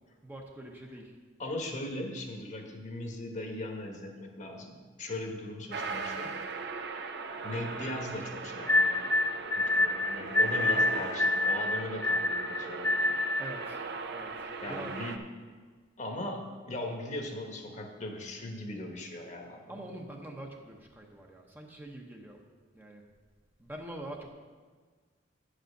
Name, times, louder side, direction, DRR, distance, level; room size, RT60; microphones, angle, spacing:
voice 1, 0.2-1.1 13.4-13.8 14.1-14.3 14.7-14.9 19.7-22.4 22.7-23.0 23.6-24.3, right 1 dB, 10° right, 1 dB, 0.8 m, -44 dB
voice 2, 1.4-6.3 7.4-9.2 9.5-13.1 14.6-15.2 16.0-19.8, left 1 dB, 40° left, 3 dB, 1.1 m, -39 dB
sound 1, 5.7-15.2, right 4 dB, 60° right, 0.6 m, -39 dB
sound 2, 8.7-13.6, left 2 dB, 10° left, 0.3 m, -27 dB
8.9 x 5.1 x 6.5 m, 1.5 s
head